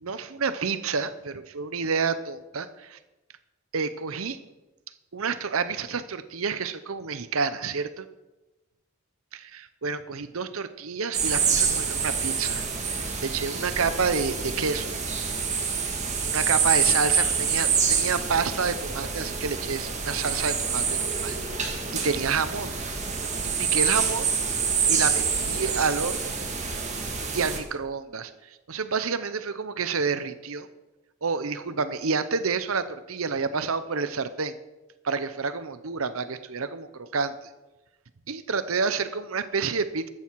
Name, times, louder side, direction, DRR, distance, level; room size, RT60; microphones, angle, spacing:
voice 1, 0.0-3.0 3.7-4.4 5.1-8.1 9.3-14.9 16.2-21.4 22.0-22.7 23.4-24.3 24.9-26.3 27.3-30.7 31.2-34.5 35.0-37.3 38.3-40.1, right 5 dB, 75° right, 12 dB, 0.8 m, -29 dB
sound 1, 11.1-27.6, right 6 dB, 30° right, 1.9 m, -27 dB
14.5 x 13.5 x 4.7 m, 1.1 s
head